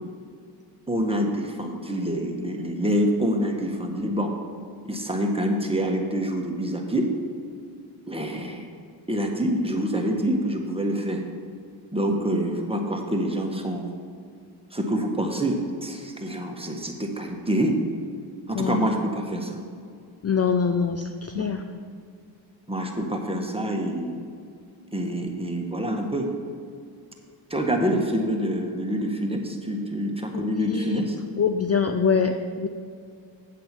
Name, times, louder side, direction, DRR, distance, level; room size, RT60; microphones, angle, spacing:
voice 1, 0.9-4.3 4.9-7.1 8.1-8.7 9.1-11.2 11.9-13.9 14.7-17.8 18.5-19.6 21.3-21.5 22.7-24.2 24.9-26.3 27.5-31.2, equal, 10° right, 2 dB, 1.6 m, -26 dB
voice 2, 20.2-21.1 21.3-21.6 30.5-31.1 31.4-32.7, left 6 dB, 30° left, 7 dB, 0.5 m, -24 dB
8.5 x 7.6 x 4.5 m, 2.3 s
supercardioid pair, 45°, 50 cm